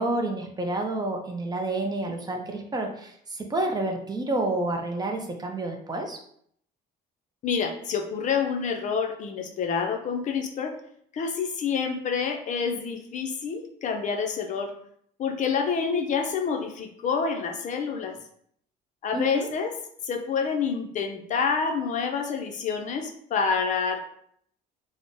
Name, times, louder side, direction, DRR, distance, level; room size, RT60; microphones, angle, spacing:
voice 1, 0.0-6.2 19.1-19.5, right 2 dB, 25° right, 3 dB, 0.5 m, -29 dB
voice 2, 7.4-10.8 11.1-14.7 15.2-18.2 19.0-19.7 20.0-24.0, left 6 dB, 45° left, 4 dB, 0.5 m, -28 dB
3.6 x 2.0 x 2.5 m, 0.66 s
cardioid pair, 110°, 17 cm